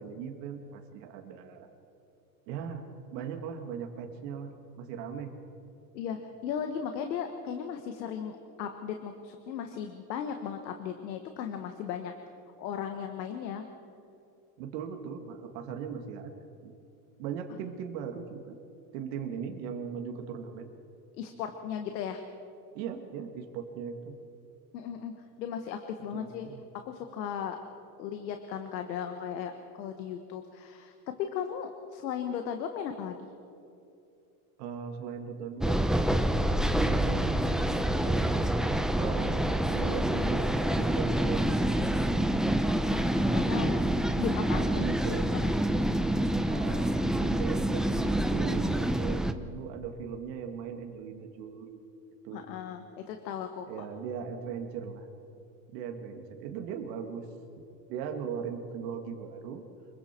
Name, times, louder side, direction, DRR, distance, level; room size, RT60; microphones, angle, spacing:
voice 1, 0.0-1.7 2.5-2.8 3.1-4.5 4.8-5.3 14.6-16.3 16.6-16.7 17.2-18.6 18.9-20.7 22.7-24.2 26.1-26.6 34.6-35.9 36.6-41.9 44.7-45.3 46.5-51.8 52.2-52.5 53.7-55.1 55.7-57.3 57.9-59.6, right 7 dB, 75° right, 4 dB, 2.2 m, -39 dB
voice 2, 5.9-12.1 12.6-13.7 21.2-22.2 24.7-26.5 26.8-27.6 28.0-33.3 42.9-43.8 44.2-44.8 45.1-45.5 52.3-53.7, left 8 dB, 85° left, 6 dB, 1.5 m, -36 dB
sound 1, 35.6-49.3, right 1 dB, ahead, 0.8 m, -27 dB
26.5 x 23.0 x 4.5 m, 2.7 s
supercardioid pair, 105°, 50 cm